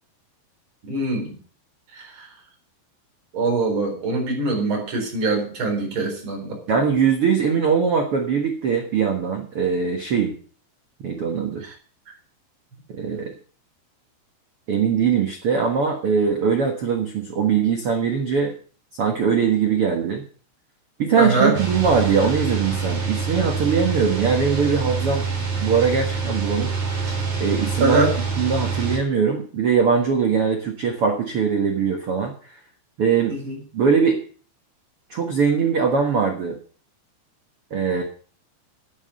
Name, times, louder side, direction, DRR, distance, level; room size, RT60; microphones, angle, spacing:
voice 1, 0.9-1.3 1.9-2.3 3.3-6.8 11.6-11.7 21.2-21.6 27.8-28.1 33.3-33.6, right 2 dB, 30° right, 1 dB, 4.7 m, -23 dB
voice 2, 6.7-10.3 11.0-11.6 12.9-13.3 14.7-18.5 19.0-20.2 21.0-25.2 25.6-26.8 27.4-28.0 28.4-32.6 33.0-33.4 33.7-34.2 35.1-36.6 37.7-38.0, right 6 dB, 80° right, 3 dB, 1.2 m, -21 dB
sound 1, 21.5-29.0, right 5 dB, 45° right, 4.6 m, -26 dB
9.9 x 9.6 x 6.6 m, 0.43 s
omnidirectional pair, 5.0 m